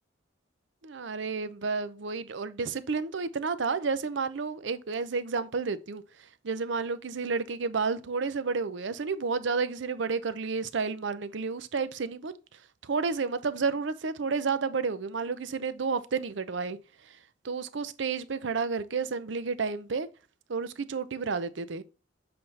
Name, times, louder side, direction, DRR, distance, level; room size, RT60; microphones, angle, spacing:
voice 1, 0.8-6.0 6.4-12.3 12.8-16.8 17.4-20.1 20.5-21.8, right 4 dB, 70° right, 0.6 m, -31 dB
7.7 x 4.2 x 3.2 m
head